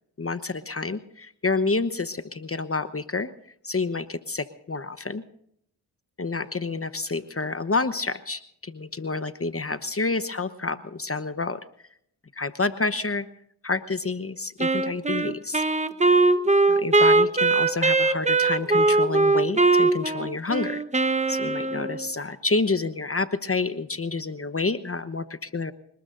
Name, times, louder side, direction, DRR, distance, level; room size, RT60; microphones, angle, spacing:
voice 1, 0.2-3.3 3.6-5.2 6.2-11.6 12.3-13.3 13.6-15.6 16.7-20.8 21.3-25.7, left 3 dB, 30° left, 12 dB, 1.0 m, -28 dB
Wind instrument woodwind instrument, 14.6-22.1, right 3 dB, 15° right, 1.1 m, -21 dB
25.5 x 19.5 x 2.6 m, 0.70 s
cardioid pair, 45°, 44 cm